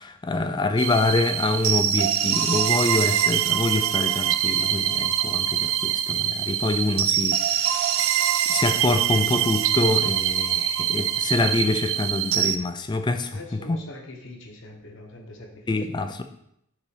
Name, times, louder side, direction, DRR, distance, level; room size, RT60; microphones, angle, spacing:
voice 1, 0.0-7.9 8.5-13.8 15.7-16.2, left 2 dB, 20° left, 7 dB, 0.3 m, -26 dB
sound 1, 0.8-12.6, right 11 dB, 65° right, 0.3 m, -24 dB
voice 2, 13.3-15.8, left 1 dB, 55° left, 2 dB, 1.1 m, -42 dB
5.5 x 3.9 x 4.9 m, 0.75 s
head